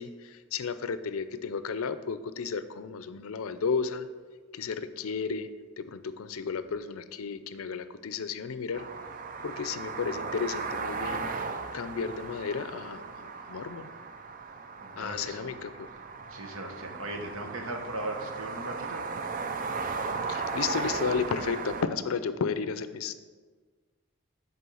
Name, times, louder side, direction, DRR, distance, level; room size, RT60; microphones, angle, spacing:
voice 1, 0.0-4.1 4.5-5.5 5.8-8.9 9.4-11.3 11.7-13.9 15.0-15.9 20.3-23.1, left 5 dB, 75° left, 12 dB, 0.4 m, -33 dB
sound 1, 8.7-21.8, right 4 dB, 40° right, 0.4 m, -36 dB
voice 2, 14.8-15.5 15.9-16.0 16.3-19.0, right 1 dB, 75° right, 2 dB, 1.1 m, -38 dB
6.7 x 4.5 x 6.2 m, 1.5 s
head